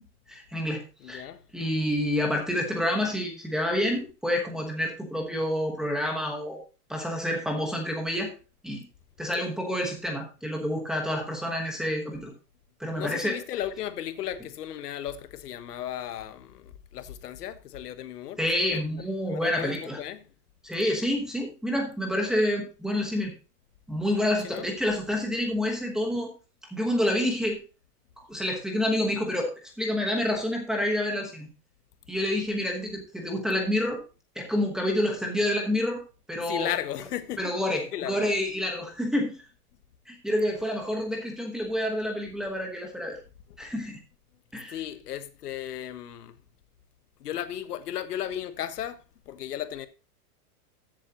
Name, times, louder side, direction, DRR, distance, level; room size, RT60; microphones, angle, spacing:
voice 1, 0.3-1.3 1.5-6.6 6.9-8.3 8.6-8.8 9.2-12.3 12.8-13.4 18.4-20.0 20.6-23.3 23.9-26.3 26.7-27.6 28.2-31.5 32.1-34.0 34.3-36.0 36.3-36.7 37.4-39.3 40.1-43.2 43.6-44.0 44.5-44.8, left 1 dB, ahead, 1.1 m, -28 dB
voice 2, 1.0-1.4 12.9-19.0 19.3-20.2 24.4-24.7 36.5-37.5 37.9-38.2 44.7-46.3 47.2-49.0 49.3-49.9, left 11 dB, 85° left, 1.3 m, -35 dB
14.5 x 7.6 x 2.9 m
supercardioid pair, 175°, 46 cm